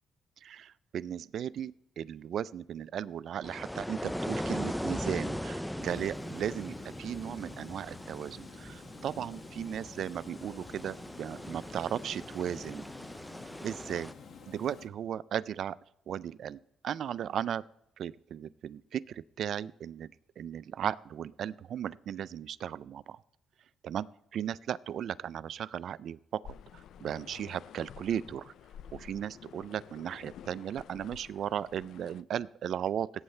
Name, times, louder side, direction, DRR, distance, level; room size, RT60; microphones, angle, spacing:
voice 1, 0.4-12.8 13.6-14.1 14.5-15.8 16.1-17.6 18.0-20.1 20.4-23.2 23.8-24.1 24.3-28.5 28.9-33.1, right 9 dB, 65° right, 19 dB, 0.3 m, -36 dB
sound 1, 3.4-14.1, equal, 5° left, 0.4 m, -39 dB
Water, 5.8-14.9, left 5 dB, 60° left, 1.8 m, -51 dB
sound 2, 26.4-32.2, left 9 dB, 75° left, 0.4 m, -51 dB
17.5 x 8.8 x 3.3 m, 0.83 s
cardioid pair, 90°, 0 cm